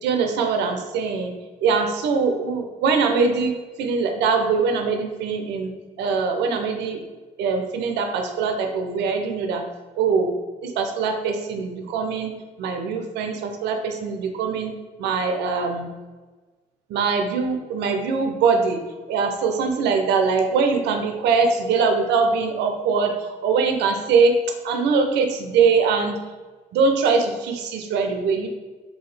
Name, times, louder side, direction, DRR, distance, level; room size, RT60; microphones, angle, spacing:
voice 1, 0.0-1.3 1.6-5.7 6.0-7.0 7.4-9.7 10.0-10.3 10.6-12.3 12.6-14.7 15.0-15.9 16.9-18.8 19.1-24.4 24.6-26.2 26.7-28.5, right 5 dB, 75° right, 5 dB, 0.5 m, -22 dB
2.8 x 2.7 x 3.2 m, 1.3 s
supercardioid pair, 65°, 18 cm